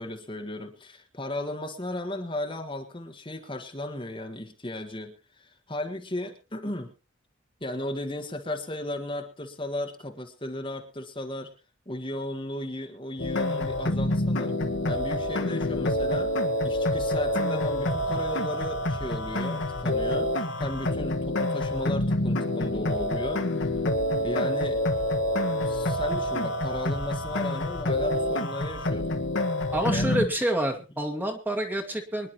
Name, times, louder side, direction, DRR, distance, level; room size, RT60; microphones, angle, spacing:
voice 1, 0.0-6.9 7.6-11.5 11.9-14.5 14.9-16.3 16.6-23.4 24.2-24.8 25.6-29.1 29.9-30.1, left 1 dB, 25° left, 4 dB, 1.5 m, -35 dB
sound 1, 13.2-30.3, left 1 dB, 65° left, 1.5 m, -27 dB
voice 2, 29.7-32.3, right 1 dB, 10° right, 3 dB, 1.9 m, -28 dB
25.0 x 11.0 x 3.0 m, 0.32 s
head